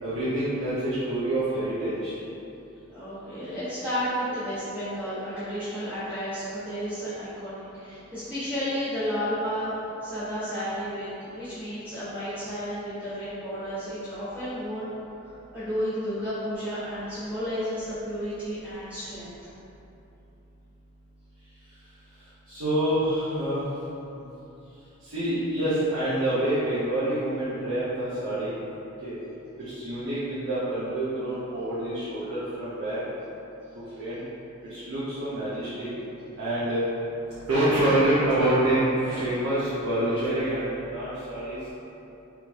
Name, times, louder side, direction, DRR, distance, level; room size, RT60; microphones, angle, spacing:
voice 1, 0.0-2.1 22.5-23.6 24.1-24.2 25.0-28.5 29.0-29.1 29.6-33.0 33.7-34.2 34.7-35.9 36.4-36.8 37.3-41.6, right 1 dB, 90° right, -11 dB, 0.9 m, -27 dB
voice 2, 2.9-9.7 10.0-14.9 15.2-19.3, equal, 10° right, -17 dB, 1.4 m, -32 dB
4.6 x 3.5 x 2.4 m, 2.9 s
head